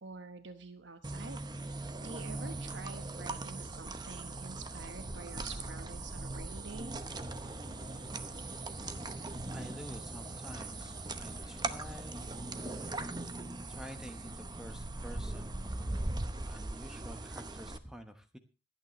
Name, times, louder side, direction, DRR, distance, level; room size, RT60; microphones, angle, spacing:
voice 1, 0.0-6.9, right 4 dB, 75° right, 9 dB, 1.1 m, -48 dB
sound 1, 1.0-17.8, right 2 dB, 25° right, 0.8 m, -40 dB
sound 2, 7.2-13.6, left 1 dB, 30° left, 3.5 m, -53 dB
voice 2, 9.5-12.3 13.4-16.1 16.4-18.4, equal, 5° right, 7 dB, 1.1 m, -49 dB
26.5 x 9.0 x 3.1 m, 0.30 s
head